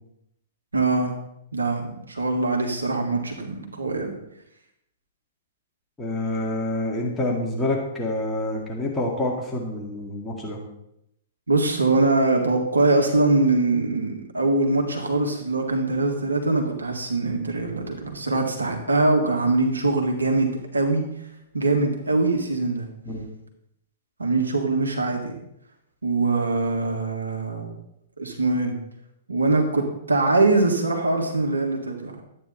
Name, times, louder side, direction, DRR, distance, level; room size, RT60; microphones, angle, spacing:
voice 1, 0.7-1.2 1.5-4.2 11.5-21.1 21.5-22.9 24.2-25.4 26.0-27.8 28.2-28.8 29.3-32.2, right 2 dB, 80° right, 2 dB, 1.8 m, -23 dB
voice 2, 6.0-10.6 23.1-23.3, left 1 dB, 10° left, -2 dB, 2.1 m, -27 dB
12.5 x 9.1 x 4.2 m, 0.79 s
figure-of-eight pair, 110°, 0 cm